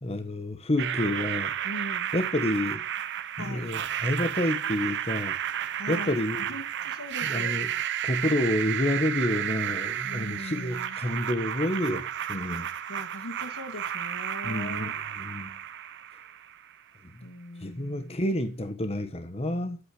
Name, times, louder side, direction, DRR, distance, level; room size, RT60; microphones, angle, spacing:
voice 1, 0.0-1.5 2.1-2.8 3.4-5.4 5.9-6.5 7.2-7.7 8.0-12.7 14.4-15.5 17.1-17.3 17.6-19.8, left 1 dB, 30° left, 1.3 m, -29 dB
sound 1, 0.8-16.7, right 10 dB, 55° right, 1.1 m, -32 dB
voice 2, 1.6-2.1 3.4-3.7 5.8-7.6 10.0-11.0 12.3-14.9 17.2-18.2, left 1 dB, 80° left, 2.6 m, -41 dB
12.0 x 8.8 x 7.8 m
head